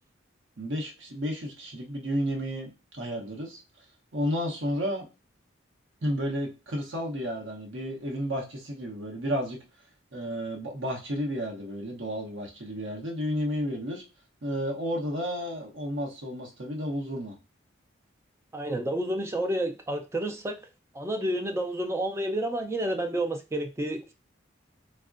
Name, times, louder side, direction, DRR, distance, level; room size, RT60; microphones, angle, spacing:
voice 1, 0.6-3.6 4.1-5.1 6.0-9.6 10.1-14.0 14.4-17.4, equal, 75° right, 0.8 m, -32 dB
voice 2, 18.5-20.6 20.9-24.1, right 1 dB, 15° right, 0.3 m, -30 dB
3.5 x 2.1 x 2.4 m
head